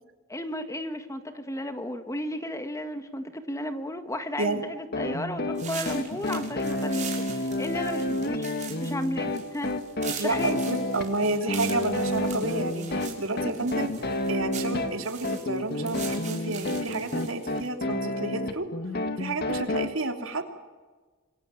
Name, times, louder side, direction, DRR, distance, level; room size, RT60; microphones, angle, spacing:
voice 1, 0.3-9.7 10.1-10.6, left 1 dB, 15° left, 8 dB, 1.7 m, -34 dB
sound 1, 4.9-19.9, left 1 dB, 50° left, 2.0 m, -30 dB
sound 2, 5.6-17.7, right 8 dB, 40° right, 6.4 m, -42 dB
voice 2, 10.2-18.7 19.2-20.4, right 2 dB, 75° right, 5 dB, 3.3 m, -30 dB
27.0 x 22.0 x 9.1 m, 1.4 s
head